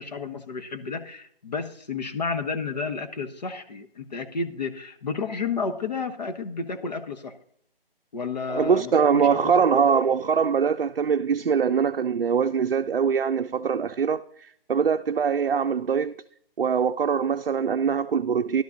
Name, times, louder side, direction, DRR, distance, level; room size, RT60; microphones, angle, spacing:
voice 1, 0.0-7.4 8.1-9.8, left 4 dB, 45° left, 1.0 m, -31 dB
voice 2, 8.5-16.1 16.6-18.6, right 6 dB, 70° right, 0.5 m, -23 dB
14.5 x 12.0 x 2.6 m
figure-of-eight pair, 150°, 29 cm